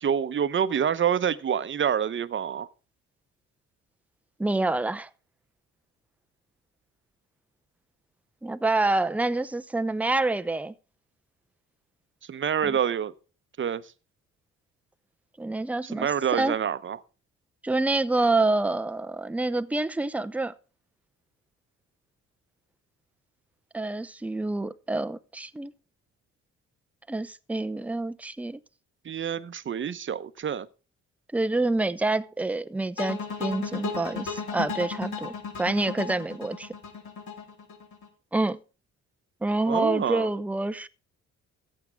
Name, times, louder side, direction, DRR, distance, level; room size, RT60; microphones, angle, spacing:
voice 1, 0.0-2.7 12.3-13.1 13.6-13.8 15.9-17.0 29.0-30.7 39.7-40.3, right 8 dB, 40° right, 0.8 m, -27 dB
voice 2, 4.4-5.1 8.4-10.7 12.6-12.8 15.4-16.1 16.3-16.6 17.6-20.5 23.7-25.7 27.1-28.6 31.3-36.7 38.3-38.6 39.4-40.9, right 2 dB, 5° right, 0.6 m, -27 dB
sound 1, 33.0-38.1, left 5 dB, 70° left, 3.9 m, -34 dB
14.5 x 8.7 x 3.6 m
cardioid pair, 90°, 30 cm